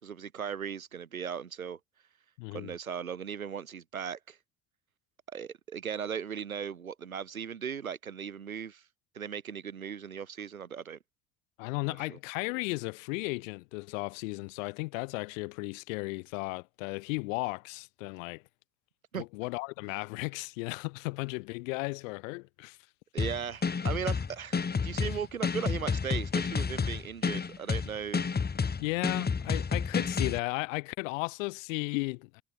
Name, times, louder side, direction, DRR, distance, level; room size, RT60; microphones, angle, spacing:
voice 1, 0.0-1.8 2.5-4.4 5.3-8.8 9.1-11.0 11.8-12.2 19.1-19.2 23.1-28.2, right 7 dB, 85° right, 2.6 m, -37 dB
voice 2, 2.4-2.7 11.6-18.4 19.1-22.8 28.8-32.4, left 27 dB, 70° left, 1.2 m, -35 dB
sound 1, 23.2-30.4, left 5 dB, 25° left, 1.6 m, -30 dB
figure-of-eight pair, 50°, 41 cm